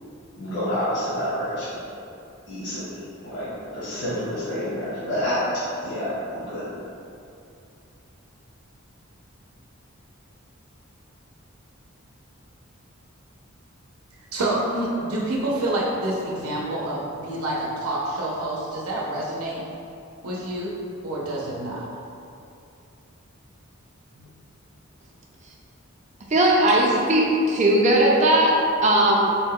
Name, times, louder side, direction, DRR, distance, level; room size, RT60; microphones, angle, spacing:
voice 1, 0.4-1.7 2.5-6.7, equal, 55° left, -11 dB, 1.1 m, -28 dB
voice 2, 14.3-19.6 20.2-21.9 24.2-24.3, right 1 dB, 90° right, -4 dB, 0.6 m, -27 dB
voice 3, 26.3-29.2, right 1 dB, 35° right, -2 dB, 0.5 m, -18 dB
4.0 x 2.2 x 3.6 m, 2.6 s
head